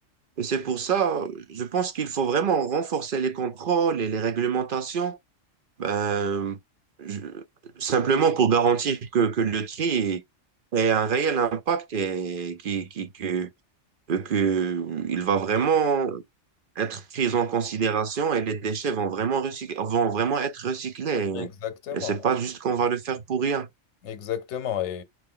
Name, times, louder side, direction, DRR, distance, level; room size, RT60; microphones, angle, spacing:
voice 1, 0.4-5.2 5.8-6.6 7.0-7.4 7.8-10.2 10.7-13.5 14.1-16.2 16.8-21.5 21.9-23.7, right 6 dB, 50° right, 0.8 m, -25 dB
voice 2, 21.1-22.2 24.0-25.0, left 10 dB, 70° left, 1.0 m, -32 dB
4.9 x 2.7 x 3.7 m
omnidirectional pair, 1.3 m